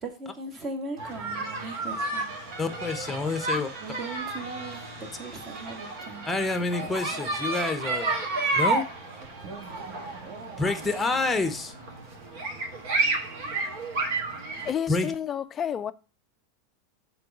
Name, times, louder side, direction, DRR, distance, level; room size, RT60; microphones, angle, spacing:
voice 1, 0.0-2.3 3.5-6.5 6.8-7.2, right 3 dB, 25° right, 1.6 m, -39 dB
sound 1, 1.0-14.7, right 3 dB, 60° right, 2.2 m, -32 dB
sound 2, 2.0-12.3, right 3 dB, 45° right, 1.7 m, -45 dB
voice 2, 2.6-3.7 6.3-8.1 8.5-9.2 10.6-12.0 14.9-15.1, left 3 dB, 5° left, 0.9 m, -28 dB
voice 3, 14.7-15.9, left 9 dB, 25° left, 0.4 m, -30 dB
6.7 x 3.9 x 6.0 m
supercardioid pair, 145°, 0 cm